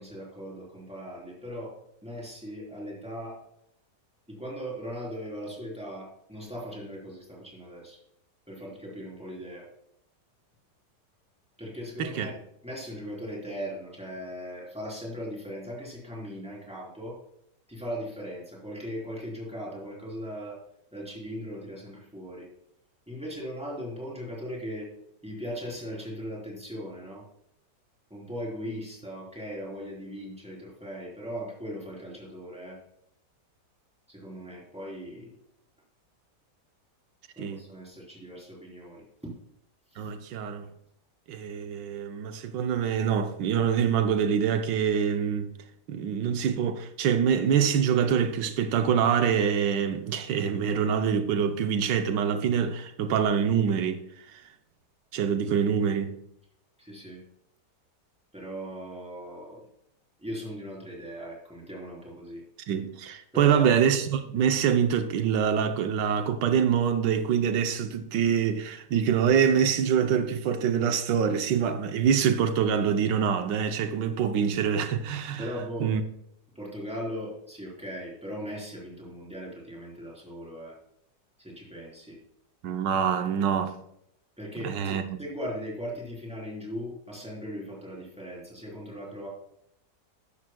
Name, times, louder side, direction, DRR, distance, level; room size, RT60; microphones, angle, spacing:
voice 1, 0.0-1.8 2.0-3.4 4.3-8.0 8.5-9.7 11.6-17.2 17.7-20.6 20.9-22.5 23.1-24.9 25.2-27.2 28.1-32.8 34.1-35.3 37.4-39.3 39.9-40.1 56.8-57.2 58.3-59.6 60.2-62.4 63.3-63.7 75.4-75.9 76.6-80.8 81.4-82.2 84.4-89.3, equal, 5° right, 3.5 m, -38 dB
voice 2, 12.0-12.3 37.4-37.6 40.0-40.7 41.3-45.6 45.9-54.5 55.1-56.2 62.7-75.5 75.8-76.0 82.6-83.8 84.6-85.2, right 7 dB, 85° right, 1.4 m, -25 dB
13.5 x 10.5 x 2.2 m
omnidirectional pair, 1.9 m